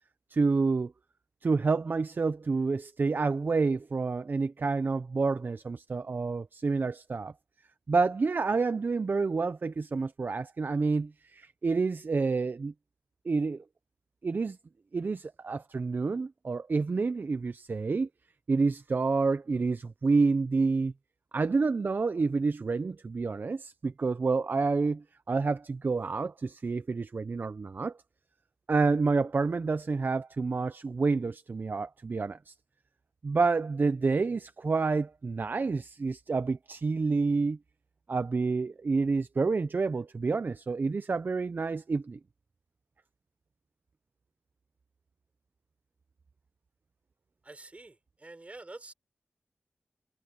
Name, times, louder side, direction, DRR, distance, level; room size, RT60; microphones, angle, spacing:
voice 1, 0.3-0.9 1.4-7.3 7.9-12.7 13.2-13.6 14.2-14.6 14.9-18.1 18.5-20.9 21.3-28.0 28.7-32.5 33.2-37.6 38.1-42.2, right 4 dB, 50° right, 0.5 m, -28 dB
voice 2, 47.4-48.9, right 2 dB, 30° right, 4.6 m, -47 dB
wide cardioid pair, 100°, 4 cm